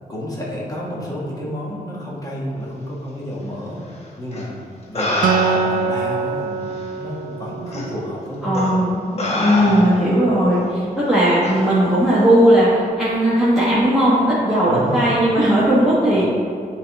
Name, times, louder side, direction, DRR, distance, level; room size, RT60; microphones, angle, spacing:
voice 1, 0.1-3.8 4.2-4.5 4.9-5.1 5.5-8.8 9.6-9.9 14.7-15.3 16.1-16.2, equal, 25° left, -5 dB, 1.2 m, -30 dB
sound 1, 4.3-4.4 4.9-5.9 6.8-6.9 7.7-7.9 8.5-8.8 9.2-10.1 11.4-11.6, left 1 dB, 45° left, 1.1 m, -24 dB
Acoustic guitar, 5.2-8.7, right 5 dB, 65° right, 0.4 m, -24 dB
voice 2, 8.4-16.2, equal, ahead, -12 dB, 1.4 m, -17 dB
9.8 x 3.4 x 3.5 m, 2.4 s
wide cardioid pair, 145°, 15 cm